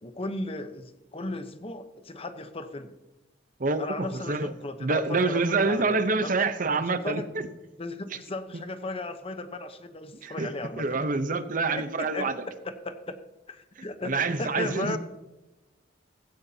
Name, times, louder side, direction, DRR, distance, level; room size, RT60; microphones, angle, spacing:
voice 1, 0.0-2.9 3.8-6.4 6.8-7.3 7.8-11.1 11.7-13.2 13.5-15.0, left 2 dB, 30° left, 9 dB, 0.9 m, -36 dB
voice 2, 3.6-4.5 4.8-7.5 10.2-12.5 14.0-15.0, right 3 dB, 45° right, 11 dB, 0.8 m, -27 dB
16.0 x 15.5 x 2.8 m, 1.0 s
head